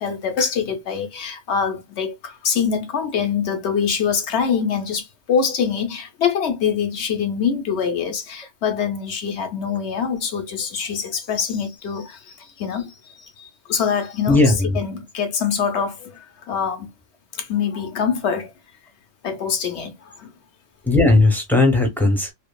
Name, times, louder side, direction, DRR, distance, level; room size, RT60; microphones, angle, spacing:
voice 1, 0.0-12.9 13.4-14.4 14.8-16.9 17.3-18.5 19.2-20.3, left 6 dB, 65° left, 0.9 m, -24 dB
voice 2, 14.3-14.8 20.8-22.3, left 2 dB, ahead, 0.7 m, -17 dB
2.8 x 2.5 x 2.2 m
omnidirectional pair, 1.3 m